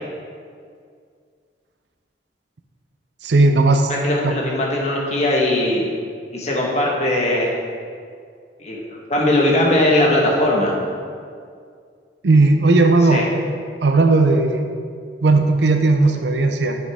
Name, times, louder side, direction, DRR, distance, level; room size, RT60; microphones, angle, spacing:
voice 1, 3.2-3.9 4.2-4.4 12.2-13.3 13.8-14.6 15.2-16.8, right 3 dB, 70° right, 5 dB, 0.6 m, -15 dB
voice 2, 4.0-5.8 6.3-7.5 8.6-8.8 9.1-10.7 13.0-13.2, left 1 dB, 40° left, -2 dB, 1.4 m, -19 dB
8.8 x 6.4 x 3.6 m, 2.2 s
head